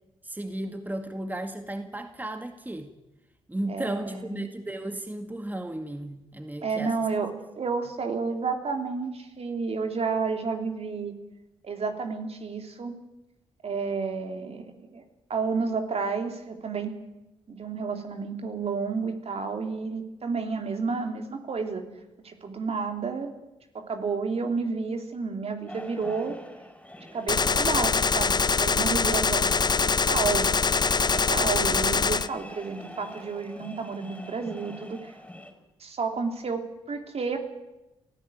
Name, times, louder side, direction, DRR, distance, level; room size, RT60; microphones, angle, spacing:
voice 1, 0.2-2.9 3.5-7.0, right 1 dB, 15° right, 7 dB, 2.0 m, -34 dB
voice 2, 3.7-4.4 6.6-11.1 11.6-12.9 13.6-15.0 15.3-16.9 17.5-21.8 22.2-23.3 23.7-26.3 27.1-29.4 29.8-30.5 31.1-35.1 35.8-37.4, right 4 dB, 55° right, 5 dB, 3.2 m, -31 dB
sound 1, 25.7-35.5, left 1 dB, 10° left, 5.4 m, -44 dB
Gunshot gunfire, 27.3-32.3, left 5 dB, 35° left, 0.7 m, -23 dB
23.0 x 14.5 x 9.3 m, 0.97 s
supercardioid pair, 55°, 13 cm